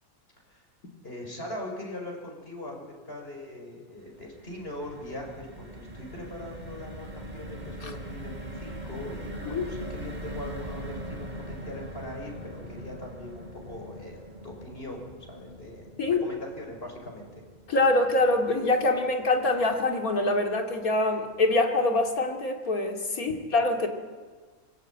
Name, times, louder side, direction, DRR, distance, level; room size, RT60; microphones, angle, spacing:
voice 1, 1.0-17.3 23.3-23.4, left 1 dB, 40° left, 1 dB, 6.2 m, -41 dB
sound 1, 4.0-20.3 20.7-20.8 21.1-21.3, right 1 dB, 30° right, 2.6 m, -42 dB
voice 2, 17.7-23.9, left 2 dB, 75° left, 4 dB, 3.0 m, -25 dB
24.5 x 21.5 x 9.2 m, 1.5 s
omnidirectional pair, 1.5 m